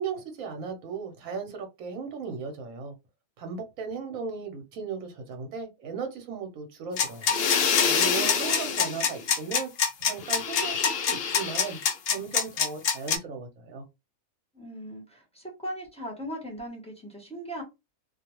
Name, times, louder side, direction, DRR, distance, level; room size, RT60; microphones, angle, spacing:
voice 1, 0.0-2.9 3.4-9.7 10.0-11.8 12.1-13.8, right 5 dB, 70° right, 1.1 m, -36 dB
sound 1, 7.0-13.2, left 6 dB, 65° left, 0.6 m, -25 dB
voice 2, 8.2-8.5 14.5-17.6, equal, 5° left, 0.5 m, -38 dB
2.4 x 2.2 x 2.9 m
omnidirectional pair, 1.5 m